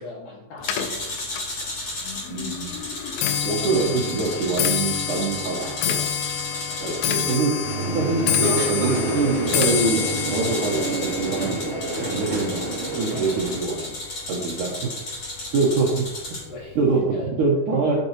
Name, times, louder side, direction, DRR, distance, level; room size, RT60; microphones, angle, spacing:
voice 1, 0.0-1.4 6.8-7.4 16.5-16.8 17.1-17.3, left 2 dB, 55° left, -3 dB, 2.4 m, -38 dB
Clock, 0.6-14.0 14.3-14.8 15.6-15.7 16.0-16.4 16.6-16.7, left 9 dB, 80° left, 2.2 m, -28 dB
sound 1, 0.6-7.4 9.5-16.5, left 1 dB, 35° left, 4.1 m, -34 dB
voice 2, 2.3-2.9 3.4-6.2 6.8-11.6 12.1-14.0 14.3-14.9 15.5-16.4 16.8-18.0, right 3 dB, 75° right, -3 dB, 1.9 m, -25 dB
sound 2, 7.6-13.6, right 3 dB, 40° right, 2.2 m, -28 dB
10.0 x 8.5 x 3.0 m, 0.96 s
omnidirectional pair, 5.3 m